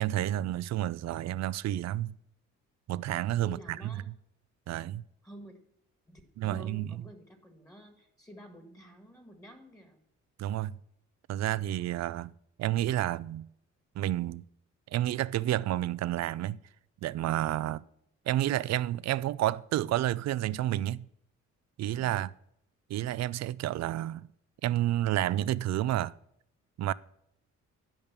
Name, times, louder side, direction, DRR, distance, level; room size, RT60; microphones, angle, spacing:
voice 1, 0.0-2.2 2.9-3.6 3.8-3.9 4.7-5.0 6.4-6.9 10.4-10.8 11.3-12.3 12.6-13.5 14.0-14.4 14.9-16.6 17.0-17.8 18.3-21.1 21.8-22.3 22.9-24.3 24.6-26.1 26.8-26.9, right 13 dB, 60° right, 0.4 m, -30 dB
voice 2, 3.4-4.1 5.2-5.6 6.1-10.0, equal, 10° left, 1.7 m, -51 dB
11.0 x 5.3 x 6.9 m
cardioid pair, 90°, 30 cm